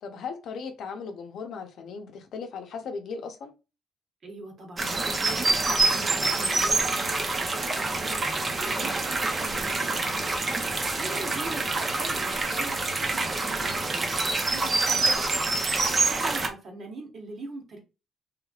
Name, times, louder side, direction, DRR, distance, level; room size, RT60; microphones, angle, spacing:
voice 1, 0.0-3.5 11.1-11.4, left 5 dB, 75° left, 0.7 m, -37 dB
voice 2, 4.2-17.8, right 2 dB, 55° right, 1.3 m, -42 dB
sound 1, 4.8-16.5, right 3 dB, 35° right, 0.7 m, -26 dB
3.3 x 3.2 x 2.4 m
cardioid pair, 90°, 0 cm